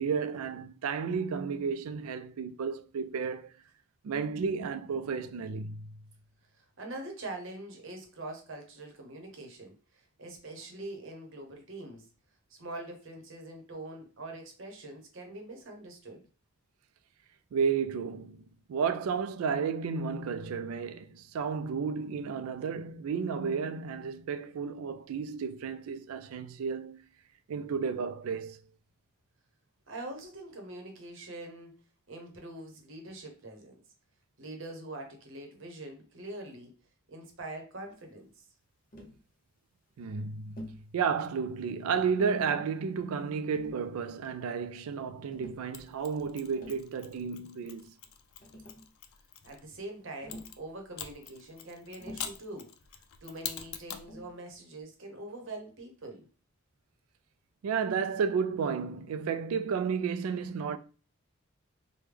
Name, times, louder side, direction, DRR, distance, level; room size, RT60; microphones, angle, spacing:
voice 1, 0.0-3.5 4.0-5.9 17.5-27.0 27.5-28.6 40.0-47.9 57.6-60.8, right 6 dB, 85° right, 0.3 m, -32 dB
voice 2, 6.5-12.1 12.5-16.3 29.9-31.7 32.1-33.8 34.4-36.7 37.1-38.4 49.4-52.7 53.2-56.3, right 2 dB, 65° right, 0.8 m, -44 dB
Tap, 38.9-39.2 40.6-40.9 41.9-42.5 43.5-44.3 45.3-45.7 46.4-46.9 48.0-48.1 48.4-48.9 50.2-50.6 52.0-52.5 54.1-54.4, equal, 40° left, 0.7 m, -48 dB
Mechanisms, 45.7-49.6 50.3-54.1, left 9 dB, 80° left, 0.4 m, -44 dB
3.3 x 2.2 x 3.3 m
head